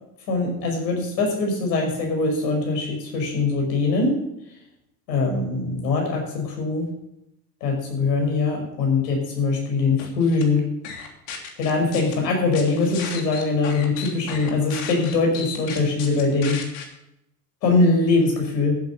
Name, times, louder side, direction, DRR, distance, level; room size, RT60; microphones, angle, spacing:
voice 1, 0.3-4.2 5.1-6.9 7.6-10.7 11.6-16.6 17.6-18.8, left 3 dB, 80° left, 1 dB, 5.8 m, -22 dB
sound 1, 10.0-10.4 10.8-12.1 12.5-16.8, left 7 dB, 60° left, 3.1 m, -35 dB
13.5 x 8.3 x 7.1 m, 0.84 s
hypercardioid pair, 85°, 49 cm